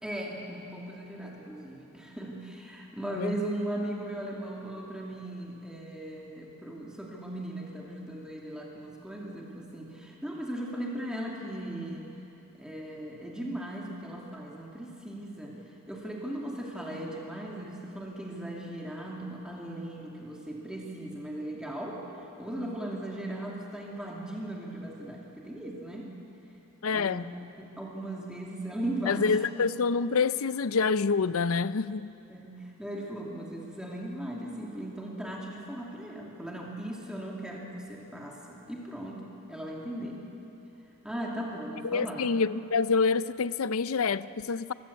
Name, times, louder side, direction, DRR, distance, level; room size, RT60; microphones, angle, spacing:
voice 1, 0.0-12.1 12.6-15.6 15.9-22.0 22.4-26.1 26.9-27.2 27.6-29.4 32.3-40.2 41.0-42.3, right 1 dB, 5° right, -3 dB, 2.5 m, -38 dB
voice 2, 26.8-27.3 29.1-32.1 41.8-44.7, left 5 dB, 70° left, 15 dB, 0.5 m, -27 dB
25.0 x 16.0 x 8.3 m, 2.9 s
head